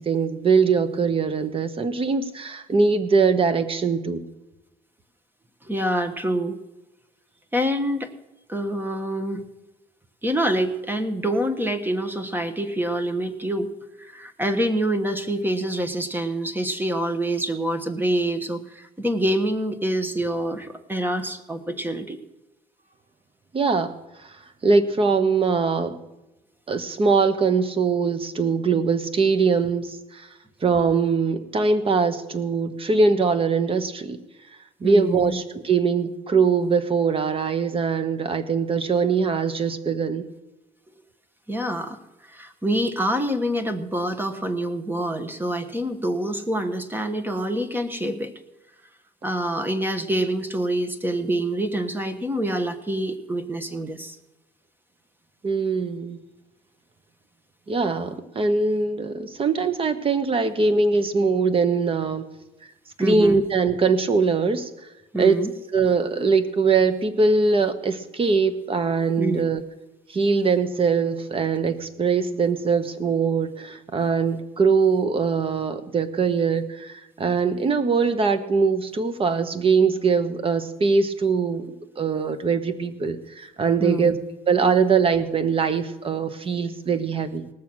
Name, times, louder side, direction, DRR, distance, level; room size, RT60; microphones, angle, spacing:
voice 1, 0.0-4.2 23.5-23.9 24.2-24.4 24.6-26.0 26.7-30.3 30.6-34.2 34.8-40.2 55.4-56.2 57.7-62.3 63.0-64.7 65.2-65.4 65.7-69.6 70.1-84.2 84.5-87.5, right 4 dB, 35° right, 11 dB, 1.2 m, -22 dB
voice 2, 5.6-6.6 7.5-8.1 8.5-9.4 10.2-13.7 14.0-22.2 34.8-35.4 41.5-42.0 42.3-48.3 49.2-54.2 63.0-63.4 65.1-65.5 69.2-69.4 83.8-84.2, right 1 dB, 10° right, 9 dB, 1.2 m, -26 dB
18.5 x 7.1 x 6.2 m, 1.0 s
cardioid pair, 110°, 17 cm